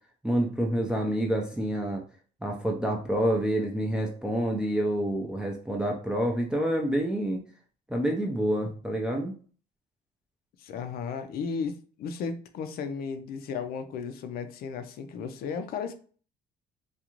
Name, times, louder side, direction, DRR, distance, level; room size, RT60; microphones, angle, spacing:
voice 1, 0.2-2.0 2.4-7.4 7.9-9.3, right 1 dB, 5° right, -1 dB, 0.4 m, -28 dB
voice 2, 10.6-15.9, left 5 dB, 65° left, 8 dB, 0.5 m, -34 dB
2.5 x 2.3 x 2.9 m, 0.42 s
cardioid pair, 110°, 17 cm